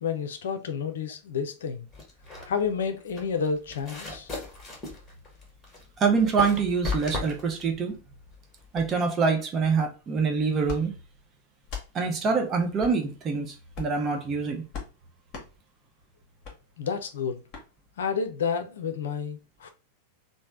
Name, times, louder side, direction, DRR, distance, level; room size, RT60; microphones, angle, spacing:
voice 1, 0.0-1.9 2.5-4.3 16.8-17.4 18.0-19.7, left 6 dB, 60° left, 0.5 m, -30 dB
sound 1, 1.9-8.9, left 3 dB, 20° left, 1.3 m, -37 dB
voice 2, 6.0-8.0 8.7-10.9 11.9-14.6, right 5 dB, 25° right, 0.8 m, -25 dB
sound 2, 10.6-10.8 11.6-11.9 12.8-13.0 13.7-14.0 14.7-14.9 15.3-15.5 16.4-16.6 17.5-17.7, left 5 dB, 35° left, 1.0 m, -37 dB
3.2 x 2.1 x 3.6 m
figure-of-eight pair, 90°, 0 cm